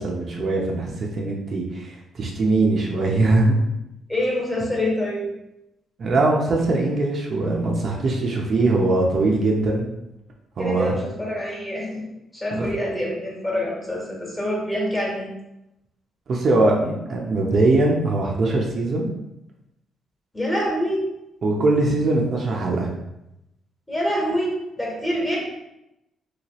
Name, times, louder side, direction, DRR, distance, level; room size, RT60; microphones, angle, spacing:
voice 1, 0.0-3.5 6.0-9.9 10.6-11.0 12.5-12.7 16.3-19.1 21.4-22.9, right 2 dB, 55° right, -1 dB, 0.6 m, -21 dB
voice 2, 4.1-5.3 10.6-12.0 12.3-15.3 20.3-21.0 23.9-25.4, equal, 15° left, -4 dB, 1.3 m, -26 dB
3.1 x 2.8 x 3.0 m, 0.88 s
cardioid pair, 90°, 0 cm